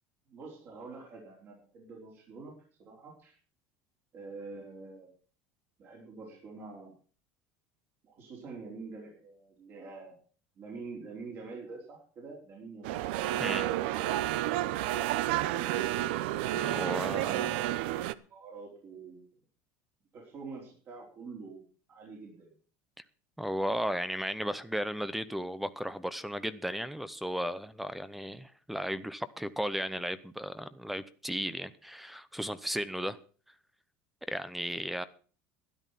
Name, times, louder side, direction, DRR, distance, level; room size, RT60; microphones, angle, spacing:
voice 1, 0.3-3.4 4.1-5.1 5.8-6.9 8.0-10.2 10.6-13.0 14.8-16.0 18.3-19.3 20.1-21.6 21.9-22.5, right 4 dB, 40° right, 4.7 m, -46 dB
sound 1, 12.8-18.1, right 14 dB, 80° right, 0.6 m, -30 dB
voice 2, 16.6-17.6 23.4-33.2 34.3-35.0, equal, ahead, 0.7 m, -35 dB
13.0 x 10.5 x 5.8 m
supercardioid pair, 135°, 6 cm